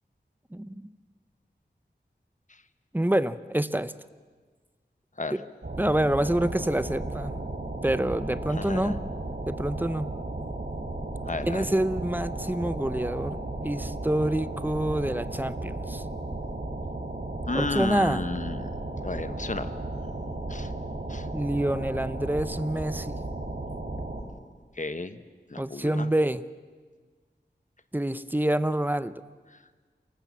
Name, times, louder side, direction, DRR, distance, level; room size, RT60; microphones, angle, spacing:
voice 1, 2.9-3.9 5.3-5.5 5.8-7.3 7.8-9.0 9.5-10.1 11.4-13.4 13.6-16.0 17.5-18.2 21.3-23.2 25.6-26.4 27.9-29.1, right 1 dB, 10° right, 14 dB, 0.8 m, -27 dB
sound 1, 5.6-24.2, right 2 dB, 60° right, 3.8 m, -34 dB
voice 2, 8.6-9.0 11.2-11.7 17.5-18.7 19.0-19.7 20.5-20.7 21.1-21.3 24.8-25.2 25.5-26.1, left 3 dB, 45° left, 11 dB, 1.2 m, -32 dB
28.0 x 19.5 x 7.5 m, 1.4 s
wide cardioid pair, 60°, 18 cm